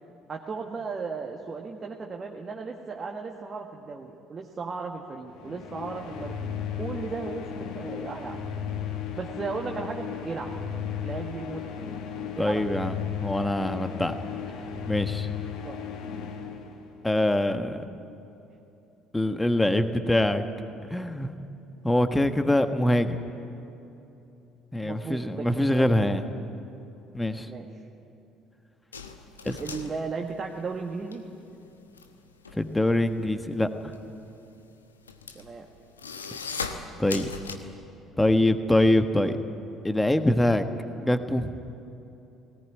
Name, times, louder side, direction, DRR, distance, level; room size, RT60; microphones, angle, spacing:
voice 1, 0.3-8.4 9.1-10.5 11.0-11.7 12.3-12.6 15.6-15.7 24.8-26.1 26.5-26.6 27.5-27.7 29.6-31.2 35.3-35.7, right 4 dB, 30° right, 1 dB, 1.6 m, -36 dB
sound 1, 5.3-17.2, left 7 dB, 60° left, 1.9 m, -35 dB
voice 2, 12.4-13.0 13.2-14.1 14.9-15.3 17.0-17.8 19.1-20.5 20.9-21.3 21.8-23.2 24.7-26.2 27.1-27.5 29.4-29.6 32.5-33.7 37.0-37.3 38.2-39.4 39.8-40.6 41.0-41.5, left 1 dB, 10° left, 9 dB, 1.4 m, -24 dB
sound 2, 28.9-31.2 31.5-37.6, left 5 dB, 80° left, 1.0 m, -38 dB
18.5 x 18.0 x 9.3 m, 2.9 s
figure-of-eight pair, 55°, 0 cm